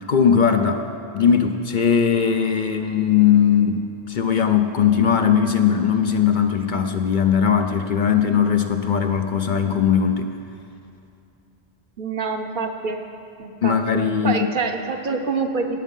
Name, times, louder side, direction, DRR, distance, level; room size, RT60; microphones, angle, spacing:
voice 1, 0.1-0.9 1.1-10.3 13.6-14.5, left 7 dB, 55° left, 6 dB, 0.7 m, -19 dB
voice 2, 12.0-13.0 13.4-15.8, right 4 dB, 55° right, 5 dB, 0.9 m, -26 dB
18.0 x 7.3 x 5.4 m, 2.6 s
omnidirectional pair, 1.1 m